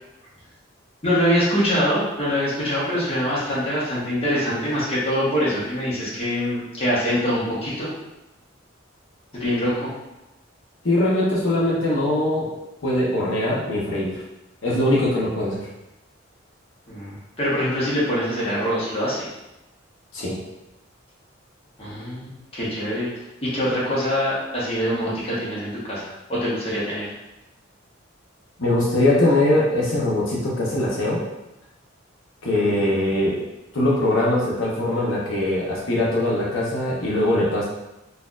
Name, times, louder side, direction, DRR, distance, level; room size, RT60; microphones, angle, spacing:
voice 1, 1.0-7.9 9.3-9.9 16.9-19.3 21.8-23.1 23.4-27.1 32.5-32.8, equal, 30° left, -8 dB, 1.1 m, -24 dB
voice 2, 10.8-12.4 12.8-14.2 14.6-15.7 20.1-20.4 28.6-31.2 32.4-33.4 33.7-37.7, left 1 dB, 75° left, -6 dB, 0.8 m, -21 dB
4.1 x 2.6 x 2.4 m, 0.95 s
head